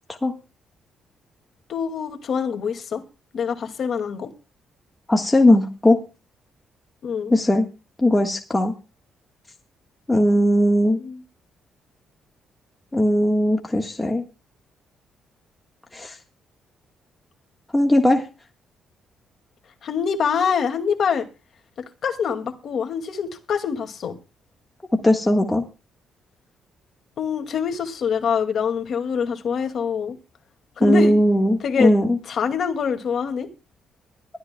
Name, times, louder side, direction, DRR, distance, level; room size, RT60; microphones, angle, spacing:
voice 1, 1.7-3.0 3.3-4.3 7.0-7.4 11.0-11.2 19.8-21.3 21.8-24.2 27.2-30.2 30.8-31.1 31.6-31.9 32.3-33.5, left 6 dB, 45° left, 2.2 m, -25 dB
voice 2, 5.1-6.0 7.3-7.7 8.0-8.7 10.1-11.0 12.9-14.2 15.9-16.2 17.7-18.2 25.0-25.6 30.8-32.2, left 1 dB, 10° left, 1.4 m, -18 dB
22.5 x 13.0 x 2.3 m
cardioid pair, 165°, 0 cm